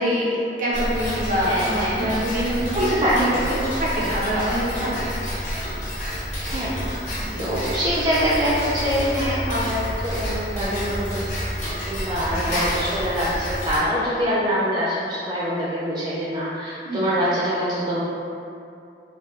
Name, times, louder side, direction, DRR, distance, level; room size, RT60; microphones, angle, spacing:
voice 1, 0.0-5.1 7.2-7.5 12.3-12.6 16.8-17.2, equal, 50° right, -7 dB, 0.7 m, -25 dB
Tick-tock, 0.7-13.8, equal, 40° left, 0.9 m, -29 dB
voice 2, 1.4-2.1 2.7-3.7 6.5-6.8 7.4-11.3 11.9-18.0, equal, 25° right, -9 dB, 0.3 m, -24 dB
2.8 x 2.2 x 3.1 m, 2.5 s
head